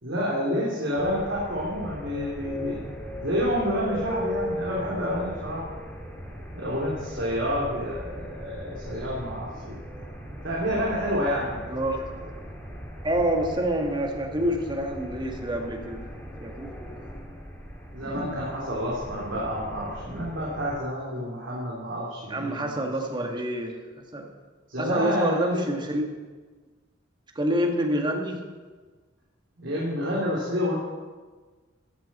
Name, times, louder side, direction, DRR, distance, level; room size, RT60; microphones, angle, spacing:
voice 1, 0.0-2.8 3.2-5.8 6.5-9.8 10.4-11.6 17.9-23.3 24.7-25.7 29.6-30.8, equal, 75° right, -5 dB, 3.0 m, -29 dB
sound 1, 0.9-20.8, equal, 10° left, 2.2 m, -39 dB
voice 2, 11.7-12.0 13.0-16.0 16.4-16.7 18.0-18.3 22.3-24.3 24.8-26.0 27.4-28.4, right 1 dB, 25° right, 2 dB, 1.8 m, -27 dB
14.5 x 13.5 x 4.3 m, 1.4 s
head